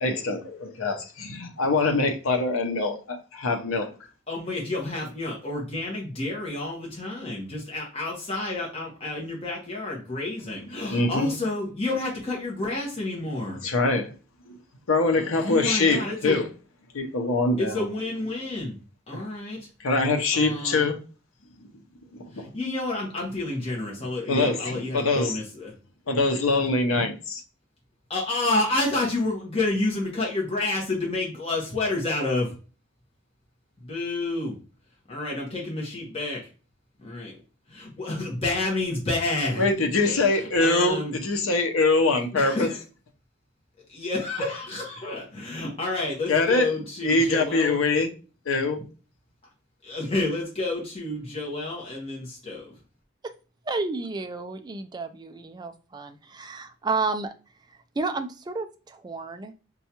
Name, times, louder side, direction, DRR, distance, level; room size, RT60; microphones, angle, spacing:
voice 1, 0.0-3.9 10.9-11.3 13.6-14.1 14.5-14.6 14.9-16.4 16.9-17.9 19.1-19.2 19.8-21.0 22.1-22.5 24.3-25.4 26.1-27.4 39.6-41.0 41.2-42.7 46.3-46.7 47.0-48.1 48.5-48.8, left 3 dB, 85° left, 0.7 m, -23 dB
voice 2, 4.3-13.6 15.4-16.4 17.6-18.8 19.1-19.6 20.3-20.9 22.3-25.7 28.1-32.5 33.8-34.6 35.1-36.5 37.0-37.3 37.7-39.6 40.1-41.1 42.3-42.8 43.9-47.8 49.8-52.7, left 2 dB, 30° left, 1.0 m, -29 dB
voice 3, 53.7-57.3 58.0-59.5, right 3 dB, 20° right, 0.3 m, -31 dB
5.3 x 2.3 x 2.8 m
head